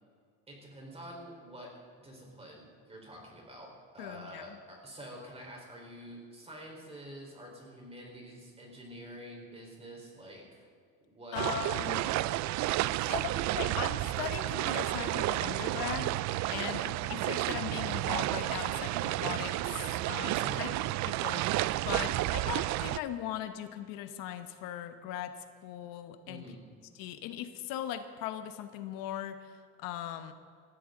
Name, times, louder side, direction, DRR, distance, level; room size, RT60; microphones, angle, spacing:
voice 1, 0.5-1.7 2.0-10.6 11.1-12.3 13.0-13.9 16.5-16.9 20.4-20.7 26.2-26.6, equal, 20° right, -1 dB, 4.5 m, -47 dB
voice 2, 4.0-4.6 11.3-12.0 13.1-16.1 16.5-16.8 17.1-20.7 21.1-25.4 25.6-26.4 26.9-30.3, left 11 dB, 80° left, 9 dB, 1.1 m, -39 dB
sound 1, 11.3-23.0, right 16 dB, 60° right, 0.5 m, -31 dB
19.5 x 14.5 x 3.9 m, 2.2 s
cardioid pair, 130°, 33 cm